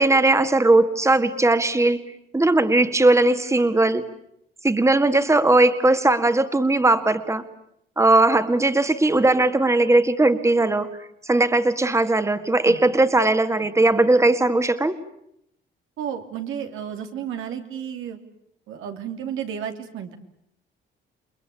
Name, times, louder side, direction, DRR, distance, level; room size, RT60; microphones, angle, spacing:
voice 1, 0.0-2.0 2.3-4.1 4.6-7.4 8.0-11.0 11.2-15.0, right 2 dB, 15° right, 10 dB, 2.0 m, -18 dB
voice 2, 16.0-18.2 18.7-20.2, right 8 dB, 85° right, 5 dB, 3.2 m, -32 dB
29.5 x 21.5 x 8.6 m, 0.74 s
cardioid pair, 90°, 20 cm